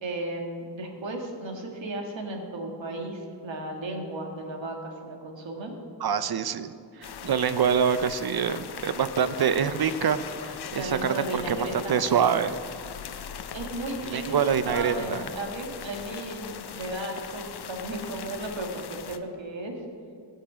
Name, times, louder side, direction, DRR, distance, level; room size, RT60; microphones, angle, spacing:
voice 1, 0.0-5.8 10.7-12.0 13.5-19.8, right 2 dB, 75° right, 2 dB, 1.8 m, -35 dB
voice 2, 6.0-6.7 7.0-10.2 10.5-12.6 14.1-15.2, right 7 dB, 55° right, 13 dB, 0.6 m, -25 dB
sound 1, 7.0-19.2, left 8 dB, 60° left, 0.6 m, -40 dB
16.0 x 6.6 x 5.0 m, 2.4 s
wide cardioid pair, 90°, 45 cm